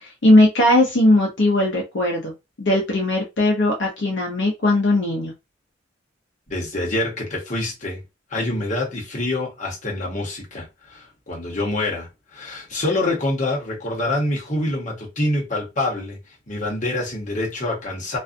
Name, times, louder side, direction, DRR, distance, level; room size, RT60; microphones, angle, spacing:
voice 1, 0.2-2.3 2.6-5.3, left 1 dB, 65° left, 0.6 m, -18 dB
voice 2, 6.5-8.0 8.3-16.2 16.5-18.2, left 2 dB, 40° left, 1.0 m, -26 dB
2.4 x 2.3 x 2.5 m
head